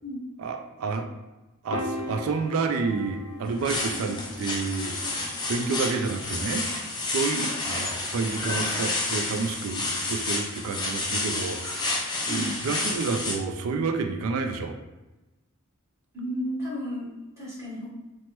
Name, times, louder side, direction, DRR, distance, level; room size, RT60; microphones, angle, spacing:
voice 1, 0.4-1.1 1.6-5.0 5.5-12.0 12.3-14.8, right 4 dB, 75° right, 6 dB, 0.3 m, -29 dB
Piano, 1.7-8.1, left 1 dB, 85° left, 0.5 m, -40 dB
sound 1, 3.4-13.3, left 2 dB, 20° left, 0.4 m, -30 dB
voice 2, 16.1-17.9, equal, 15° right, -8 dB, 0.9 m, -34 dB
3.2 x 2.1 x 2.9 m, 1.1 s
head